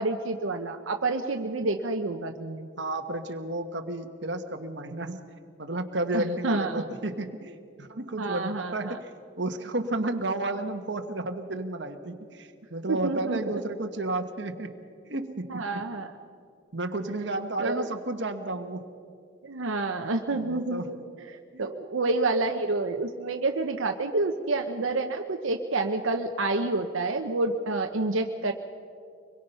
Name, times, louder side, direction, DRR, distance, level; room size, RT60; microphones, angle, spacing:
voice 1, 0.0-2.7 6.1-6.8 8.2-9.0 12.9-13.6 15.5-16.1 17.6-17.9 19.4-21.0 21.6-28.5, right 2 dB, 85° right, 5 dB, 0.9 m, -28 dB
voice 2, 2.8-5.2 5.6-9.1 9.4-14.7 15.0-15.8 16.7-18.9 20.3-20.9 21.5-21.7, right 2 dB, 60° right, 6 dB, 1.3 m, -32 dB
24.5 x 22.0 x 5.6 m, 2.3 s
head